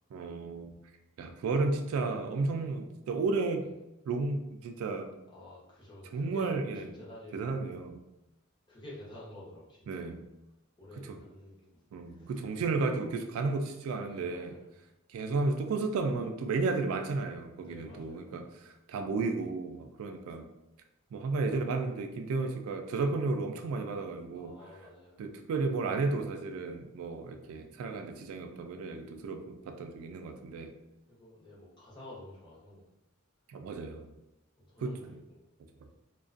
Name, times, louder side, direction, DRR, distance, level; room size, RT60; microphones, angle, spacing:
voice 1, 0.1-0.7 1.2-3.6 4.1-5.1 6.1-6.9 7.3-8.0 9.9-10.3 11.0-11.2 11.9-14.5 15.1-20.5 21.1-24.5 25.2-30.7 33.5-34.1 34.8-34.9, right 3 dB, 75° right, 5 dB, 0.3 m, -33 dB
voice 2, 5.3-6.5 6.8-7.5 8.7-10.2 10.8-11.8 12.1-12.3 14.1-14.7 17.5-18.6 24.3-25.2 31.1-32.8 34.6-35.4 35.8-35.9, left 1 dB, 20° left, -7 dB, 0.7 m, -50 dB
2.4 x 2.2 x 2.4 m, 0.92 s
head